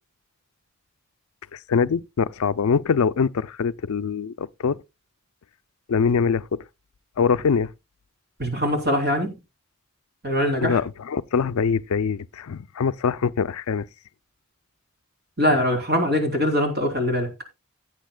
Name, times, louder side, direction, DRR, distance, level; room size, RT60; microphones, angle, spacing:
voice 1, 1.7-4.8 5.9-6.6 7.2-7.7 10.6-13.9, left 6 dB, 80° left, 0.4 m, -23 dB
voice 2, 8.4-9.3 10.2-10.8 15.4-17.3, equal, 45° right, 3.2 m, -22 dB
16.5 x 9.0 x 2.2 m
head